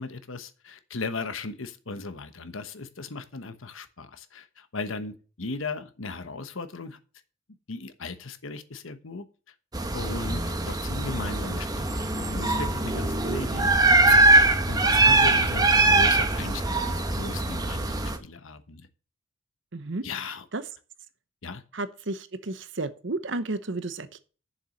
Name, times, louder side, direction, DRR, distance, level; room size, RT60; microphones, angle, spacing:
voice 1, 0.0-7.0 7.7-9.3 9.9-13.7 14.1-18.9 20.0-20.5 21.4-21.6, left 3 dB, 75° left, 11 dB, 1.1 m, -37 dB
sound 1, 9.7-18.2, right 2 dB, 20° right, 1.0 m, -22 dB
voice 2, 19.7-20.0 20.5-20.6 21.7-24.2, right 2 dB, 60° right, 13 dB, 0.9 m, -32 dB
7.1 x 7.1 x 6.4 m, 0.37 s
head